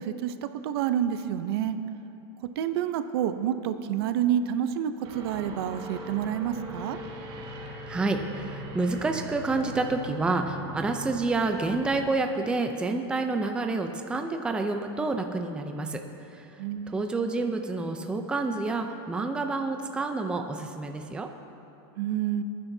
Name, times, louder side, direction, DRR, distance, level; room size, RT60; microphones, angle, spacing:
voice 1, 0.0-1.8 2.6-7.0 16.6-17.0 22.0-22.4, right 10 dB, 65° right, 10 dB, 0.7 m, -28 dB
sound 1, 5.0-12.1, right 1 dB, 40° right, 1.9 m, -40 dB
voice 2, 7.9-16.0 16.3-16.5 16.9-21.3, right 3 dB, 5° right, 5 dB, 0.5 m, -28 dB
25.0 x 9.7 x 2.7 m, 2.9 s
supercardioid pair, 155°, 14 cm